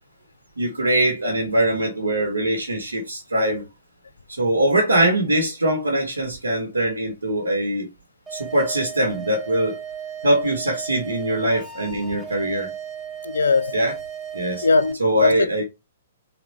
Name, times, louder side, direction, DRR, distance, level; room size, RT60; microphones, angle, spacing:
voice 1, 0.6-3.6 4.3-7.9 8.3-9.8 10.2-12.7 13.7-14.0 14.3-14.7 15.0-15.6, right 1 dB, 80° right, 1.6 m, -22 dB
sound 1, 8.3-14.9, right 8 dB, 10° right, 1.1 m, -35 dB
voice 2, 13.2-13.7 14.6-15.6, left 4 dB, 70° left, 0.4 m, -20 dB
4.2 x 4.0 x 3.1 m
figure-of-eight pair, 120°, 0 cm